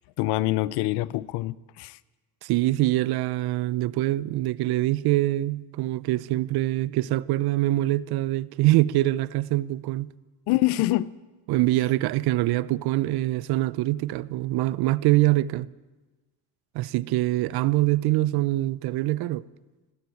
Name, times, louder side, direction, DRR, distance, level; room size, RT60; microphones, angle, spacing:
voice 1, 0.2-2.0 10.5-11.1, left 17 dB, 80° left, 0.6 m, -25 dB
voice 2, 2.4-10.1 11.5-15.7 16.7-19.4, right 17 dB, 70° right, 0.6 m, -24 dB
17.5 x 8.7 x 9.2 m
supercardioid pair, 90°, 39 cm